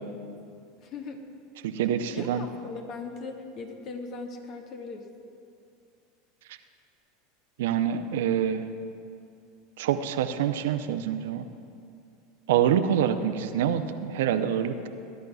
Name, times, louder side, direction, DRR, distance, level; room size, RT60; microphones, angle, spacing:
voice 1, 0.8-1.2 2.1-5.1, left 3 dB, 45° left, 3 dB, 1.5 m, -39 dB
voice 2, 1.6-2.4 7.6-8.7 9.8-11.5 12.5-14.9, right 9 dB, 70° right, 9 dB, 0.6 m, -26 dB
18.0 x 10.5 x 2.3 m, 2.4 s
hypercardioid pair, 85°, 0 cm